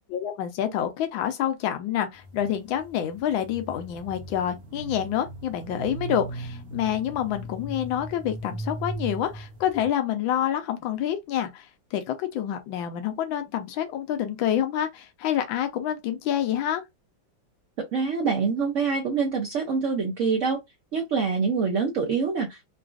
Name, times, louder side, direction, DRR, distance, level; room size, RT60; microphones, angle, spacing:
voice 1, 0.1-11.7 11.9-16.8, left 10 dB, 80° left, 1.5 m, -27 dB
sound 1, 2.1-9.9, right 2 dB, 45° right, 1.0 m, -38 dB
voice 2, 17.8-20.6 20.9-22.6, right 5 dB, 70° right, 0.7 m, -25 dB
3.8 x 2.5 x 2.4 m
omnidirectional pair, 2.1 m